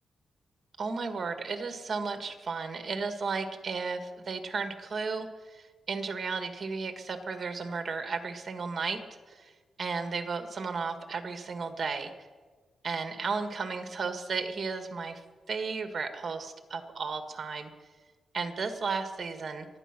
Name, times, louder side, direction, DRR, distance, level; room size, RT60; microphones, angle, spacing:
voice 1, 0.8-9.5 9.8-12.1 12.8-15.2 15.5-17.7 18.3-19.7, right 4 dB, 45° right, 7 dB, 1.8 m, -34 dB
24.0 x 9.8 x 6.1 m, 1.4 s
wide cardioid pair, 115°, 0 cm